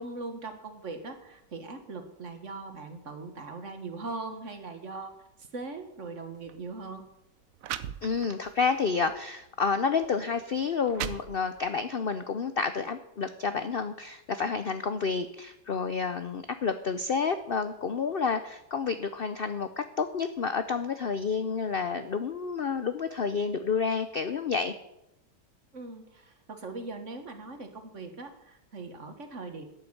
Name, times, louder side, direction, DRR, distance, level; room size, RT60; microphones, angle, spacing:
voice 1, 0.0-5.1 5.5-7.1 25.7-29.6, right 3 dB, 45° right, 6 dB, 1.8 m, -40 dB
sound 1, 6.4-6.6 7.3-7.4 7.6-8.5 9.1-9.3 10.0-10.1 10.6-11.8, right 10 dB, 65° right, 0.9 m, -38 dB
voice 2, 8.0-24.7, left 5 dB, 60° left, 10 dB, 0.5 m, -30 dB
12.0 x 7.4 x 8.8 m, 0.88 s
omnidirectional pair, 1.8 m